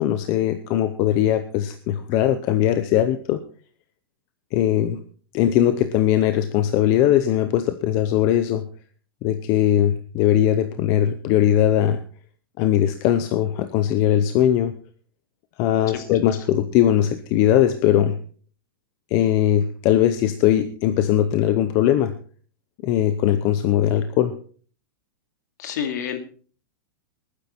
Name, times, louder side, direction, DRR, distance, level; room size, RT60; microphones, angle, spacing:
voice 1, 0.0-3.4 4.5-5.0 5.3-8.6 9.2-12.0 12.6-14.7 15.6-18.2 19.1-22.1 22.8-24.4, left 11 dB, 25° left, 9 dB, 0.7 m, -20 dB
voice 2, 25.6-26.2, left 8 dB, 50° left, 7 dB, 2.4 m, -29 dB
19.0 x 9.8 x 4.3 m, 0.43 s
supercardioid pair, 180°, 12 cm